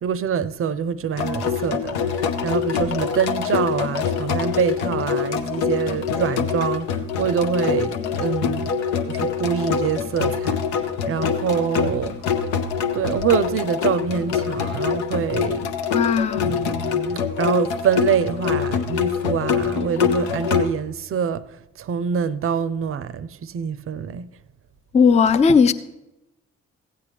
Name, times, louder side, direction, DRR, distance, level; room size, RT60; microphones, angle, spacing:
voice 1, 0.0-8.7 9.1-12.2 12.9-15.7 16.4-24.3, right 7 dB, 40° right, 0.5 m, -25 dB
sound 1, 1.2-20.7, left 6 dB, 85° left, 0.6 m, -24 dB
voice 2, 15.9-16.5 24.9-25.7, left 5 dB, 20° left, 0.4 m, -16 dB
15.5 x 8.4 x 3.4 m
hypercardioid pair, 40°, 34 cm